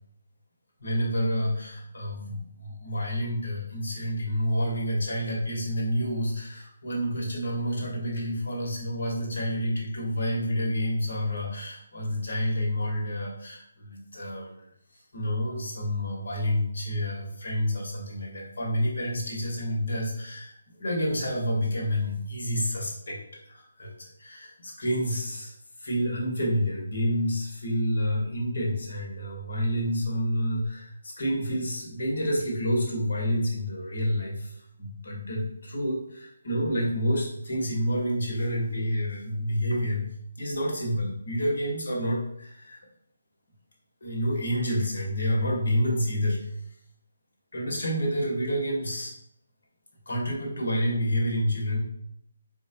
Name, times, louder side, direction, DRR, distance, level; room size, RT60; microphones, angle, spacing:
voice 1, 0.8-14.5 15.1-23.2 23.5-23.9 24.2-25.5 25.8-34.5 34.8-40.1 40.4-42.8 44.0-46.5 47.5-49.1 50.1-51.8, equal, 70° left, -2 dB, 1.3 m, -29 dB
4.5 x 2.2 x 2.7 m, 0.72 s
figure-of-eight pair, 150°, 0 cm